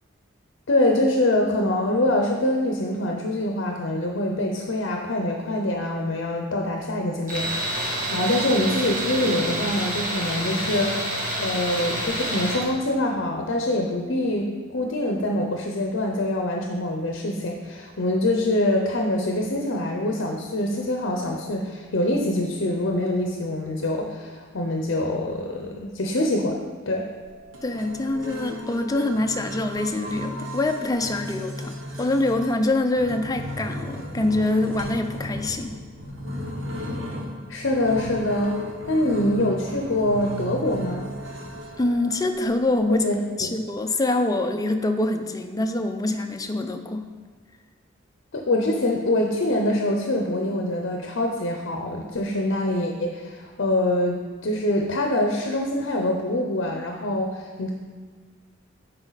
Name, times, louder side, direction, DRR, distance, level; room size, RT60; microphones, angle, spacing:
voice 1, 0.7-7.7 8.1-27.1 37.5-38.6 38.9-41.1 42.9-43.2 48.3-57.7, left 1 dB, 60° left, 1 dB, 0.7 m, -24 dB
Tools, 7.3-12.7, right 1 dB, 45° right, 1.4 m, -28 dB
sound 1, 27.2-43.0, left 1 dB, 70° right, 1.2 m, -35 dB
voice 2, 27.6-31.7 32.0-35.8 41.8-43.1 43.4-47.1, left 2 dB, 20° left, 5 dB, 0.5 m, -25 dB
10.0 x 4.4 x 4.0 m, 1.5 s
head